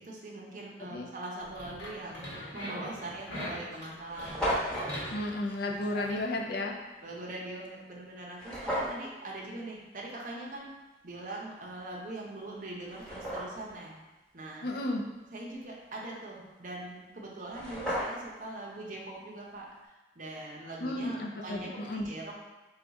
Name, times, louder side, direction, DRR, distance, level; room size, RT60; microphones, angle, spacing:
voice 1, 0.0-4.6 6.1-6.2 7.0-10.7 11.0-14.0 14.3-14.7 15.3-19.7 20.2-22.4, right 2 dB, 50° right, -2 dB, 0.7 m, -42 dB
sound 1, 1.4-6.2, equal, 90° left, 1.3 m, -42 dB
sound 2, 2.6-2.7 3.5-3.6 3.7-3.8 4.0-4.9 8.4-9.0 11.9-12.0 12.6-13.7 17.1-17.2 17.4-18.4, equal, 5° left, 1.0 m, -34 dB
voice 2, 5.1-6.8 14.6-15.1 20.8-22.1, left 1 dB, 60° left, 1 dB, 0.5 m, -33 dB
3.5 x 2.3 x 4.0 m, 1.1 s
head